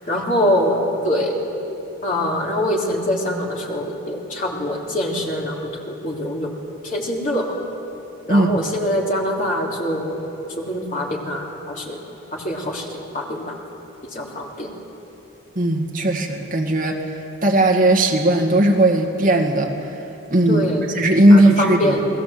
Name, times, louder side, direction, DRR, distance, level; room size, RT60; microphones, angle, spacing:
voice 1, 0.1-0.8 1.0-1.4 2.0-6.5 6.8-7.6 8.3-10.2 10.6-12.0 12.3-13.6 14.1-14.7 20.5-20.9 21.3-22.0, left 1 dB, 35° left, -2 dB, 3.4 m, -24 dB
voice 2, 15.6-17.0 17.4-19.7 20.3-20.7 20.9-22.0, right 1 dB, 40° right, 2 dB, 1.9 m, -17 dB
29.5 x 20.5 x 7.7 m, 3.0 s
head